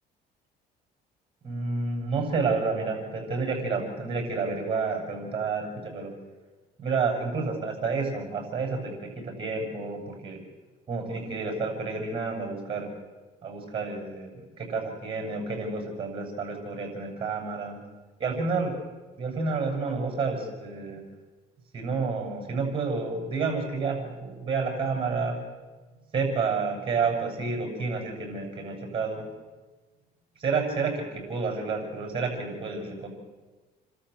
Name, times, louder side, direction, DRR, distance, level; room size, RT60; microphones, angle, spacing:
voice 1, 1.4-6.1 6.8-10.4 10.9-12.9 13.4-17.8 18.2-18.8 19.2-21.0 21.7-25.4 26.1-29.3 30.4-33.1, right 4 dB, 30° right, 2 dB, 7.4 m, -30 dB
28.5 x 13.0 x 8.1 m, 1.3 s
cardioid pair, 110°, 17 cm